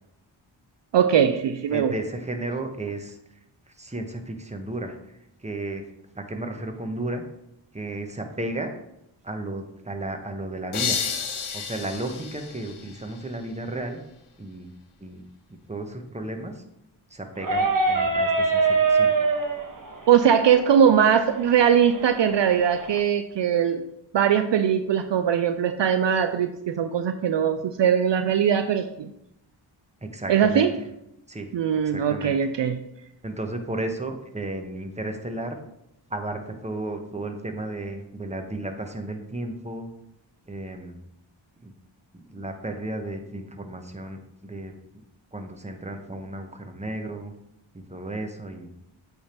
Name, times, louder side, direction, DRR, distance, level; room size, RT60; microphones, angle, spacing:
voice 1, 0.9-1.9 20.1-23.8 24.1-29.1 30.3-30.7 31.5-32.8, right 8 dB, 65° right, 9 dB, 0.5 m, -21 dB
voice 2, 1.7-3.2 3.8-5.0 5.4-5.8 6.1-7.2 7.7-8.7 9.2-11.1 11.5-14.0 14.4-14.7 15.0-15.2 15.7-16.6 17.1-18.6 18.9-19.1 30.0-30.7 31.3-31.5 31.8-32.3 33.2-35.6 36.1-39.9 40.5-41.0 41.6-41.7 42.1-44.7 45.3-47.3 47.9-48.7, right 2 dB, 15° right, 5 dB, 1.1 m, -33 dB
sound 1, 10.7-13.5, left 6 dB, 85° left, 0.9 m, -31 dB
sound 2, 17.4-23.0, right 4 dB, 40° right, 1.4 m, -25 dB
8.5 x 3.6 x 4.4 m, 0.81 s
cardioid pair, 45°, 48 cm